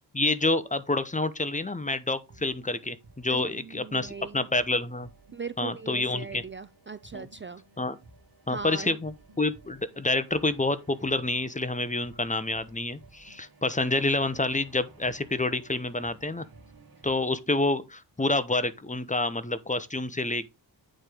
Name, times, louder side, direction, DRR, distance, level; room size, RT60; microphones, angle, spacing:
voice 1, 0.1-5.1 5.6-6.4 7.1-7.3 7.8-8.0 8.5-16.4 17.0-20.5, left 2 dB, 20° left, 0.9 m, -28 dB
sound 1, 2.3-17.1, right 3 dB, 55° right, 2.3 m, -56 dB
voice 2, 3.3-4.5 5.3-7.6 8.5-9.0, right 5 dB, 30° right, 0.5 m, -39 dB
8.9 x 4.5 x 5.0 m
wide cardioid pair, 90°, 42 cm